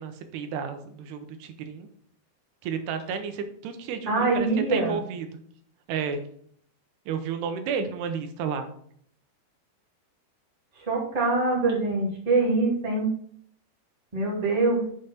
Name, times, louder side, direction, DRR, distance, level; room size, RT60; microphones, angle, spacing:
voice 1, 0.0-1.9 2.6-5.3 5.9-6.2 7.1-8.7, right 6 dB, 85° right, 8 dB, 2.9 m, -32 dB
voice 2, 4.0-5.0 10.7-13.1 14.1-14.8, right 3 dB, 15° right, -3 dB, 1.7 m, -24 dB
7.0 x 5.4 x 5.6 m, 0.62 s
omnidirectional pair, 4.6 m